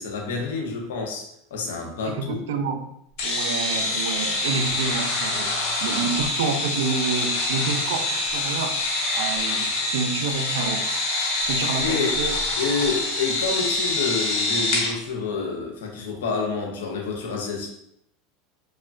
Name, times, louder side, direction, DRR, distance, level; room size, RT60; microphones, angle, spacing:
voice 1, 0.0-2.4 11.8-12.2 12.6-17.7, left 4 dB, 85° left, 1 dB, 0.6 m, -28 dB
voice 2, 2.0-2.8 3.2-5.5 5.8-8.8 9.1-10.9 11.5-12.4, right 5 dB, 80° right, 7 dB, 0.3 m, -28 dB
sound 1, 3.2-14.9, left 2 dB, 60° left, 0.9 m, -25 dB
3.0 x 2.1 x 2.5 m, 0.74 s
supercardioid pair, 110°, 0 cm